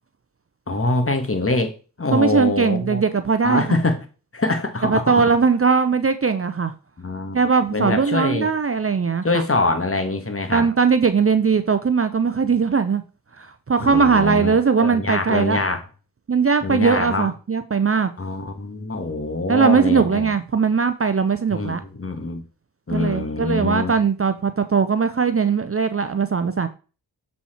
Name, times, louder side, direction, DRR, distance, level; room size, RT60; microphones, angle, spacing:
voice 1, 0.7-1.7 2.0-3.0 3.4-4.0 4.3-5.2 7.0-7.4 7.7-8.5 9.2-10.7 13.8-14.5 14.8-15.8 16.6-17.3 18.2-20.3 21.5-22.4 22.9-24.0, left 2 dB, 30° left, 7 dB, 1.9 m, -24 dB
voice 2, 2.1-3.8 4.8-6.7 7.3-9.4 10.5-13.0 13.4-15.6 16.3-18.1 19.5-21.8 22.9-26.7, right 5 dB, 30° right, 10 dB, 0.7 m, -20 dB
7.1 x 4.3 x 4.4 m, 0.34 s
supercardioid pair, 45°, 43 cm